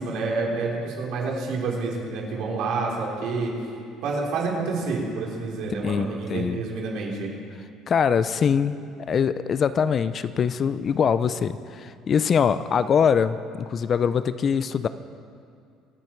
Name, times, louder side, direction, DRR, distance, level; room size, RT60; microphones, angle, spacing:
voice 1, 0.0-3.5 4.0-7.3, right 3 dB, 65° right, -2 dB, 3.9 m, -28 dB
voice 2, 5.8-6.6 7.9-8.8 9.1-14.9, left 7 dB, 35° left, 13 dB, 0.4 m, -23 dB
26.0 x 9.7 x 4.6 m, 2.4 s
cardioid pair, 135°, 0 cm